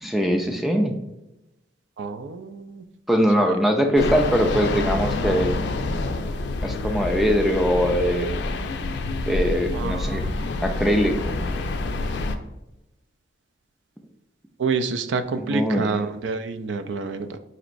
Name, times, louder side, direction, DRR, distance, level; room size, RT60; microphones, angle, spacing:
voice 1, 0.0-1.0 3.1-5.6 6.6-8.4 9.3-10.3 10.6-11.4 15.4-15.9, equal, ahead, 3 dB, 0.3 m, -22 dB
voice 2, 2.0-2.8 3.4-3.5 9.7-10.6 14.6-17.4, right 4 dB, 80° right, 10 dB, 0.3 m, -28 dB
sound 1, 4.0-12.4, left 2 dB, 70° left, 0.4 m, -27 dB
4.3 x 2.9 x 2.5 m, 0.97 s
head